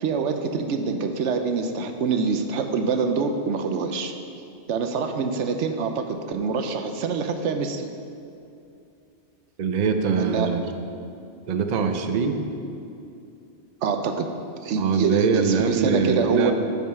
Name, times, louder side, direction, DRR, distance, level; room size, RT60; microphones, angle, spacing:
voice 1, 0.0-4.1 4.7-7.9 10.2-10.7 13.8-14.3 14.6-16.5, right 5 dB, 80° right, 6 dB, 1.0 m, -25 dB
voice 2, 9.6-10.6 11.5-12.4 14.8-16.5, right 5 dB, 45° right, 6 dB, 0.6 m, -23 dB
9.4 x 5.5 x 5.5 m, 2.6 s
omnidirectional pair, 1.2 m